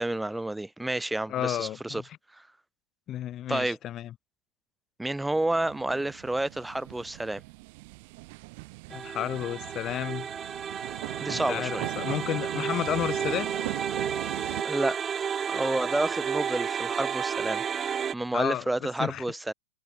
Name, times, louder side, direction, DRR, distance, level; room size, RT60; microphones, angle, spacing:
voice 1, 0.0-2.0 2.3-2.4 3.5-3.8 5.0-7.4 11.2-11.9 14.6-15.0 15.5-19.5, right 2 dB, 5° right, 0.6 m, -30 dB
voice 2, 1.3-2.0 3.1-4.1 8.9-10.3 11.3-13.5 18.3-18.6 19.0-19.2, left 12 dB, 30° left, 1.7 m, -32 dB
sound 1, 5.5-14.6, right 27 dB, 50° right, 2.6 m, -40 dB
sound 2, 8.9-18.1, right 7 dB, 20° right, 1.4 m, -32 dB
hypercardioid pair, 105°, 0 cm